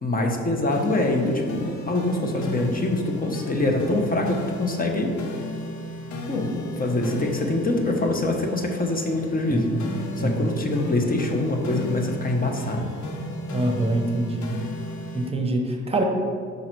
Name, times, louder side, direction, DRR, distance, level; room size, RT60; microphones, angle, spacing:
voice 1, 0.0-5.1 6.3-9.7 10.2-12.9, left 2 dB, 30° left, 3 dB, 1.0 m, -24 dB
sound 1, 0.7-15.3, left 1 dB, 75° left, 0.9 m, -35 dB
voice 2, 9.5-9.9 10.1-10.3 13.5-14.5 15.1-16.0, right 2 dB, 20° right, 3 dB, 1.0 m, -25 dB
5.6 x 5.3 x 4.6 m, 2.1 s
cardioid pair, 90°, 30 cm